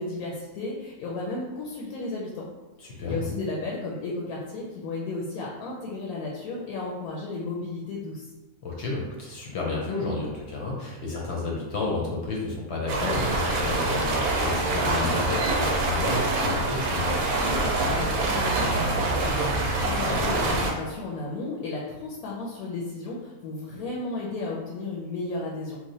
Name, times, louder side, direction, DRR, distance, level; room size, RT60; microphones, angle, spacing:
voice 1, 0.0-2.5 3.1-8.2 17.8-25.8, left 3 dB, 85° left, -3 dB, 1.1 m, -33 dB
voice 2, 2.8-3.3 8.6-17.2, left 3 dB, 60° left, -2 dB, 0.8 m, -31 dB
sound 1, 12.9-20.7, right 2 dB, 90° right, 1.1 m, -25 dB
3.1 x 2.1 x 4.0 m, 1.2 s
omnidirectional pair, 1.5 m